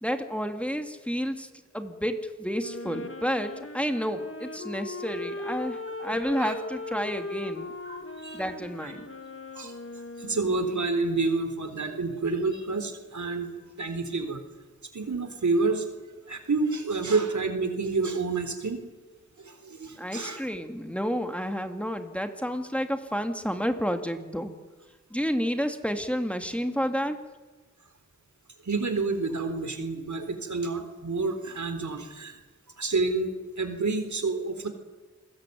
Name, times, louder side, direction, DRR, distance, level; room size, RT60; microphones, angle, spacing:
voice 1, 0.0-1.5 1.7-7.7 8.3-9.1 20.0-24.6 25.1-27.2, equal, 5° left, 6 dB, 2.7 m, -30 dB
Wind instrument woodwind instrument, 2.5-10.9, left 2 dB, 45° left, 2.4 m, -38 dB
voice 2, 7.8-8.4 8.8-8.9 9.6-9.7 10.2-13.5 13.8-14.4 14.9-15.9 16.3-18.8 19.5-20.4 28.7-32.4 32.8-34.7, right 3 dB, 75° right, 8 dB, 3.8 m, -29 dB
28.0 x 21.5 x 9.4 m, 1.2 s
wide cardioid pair, 55°, 29 cm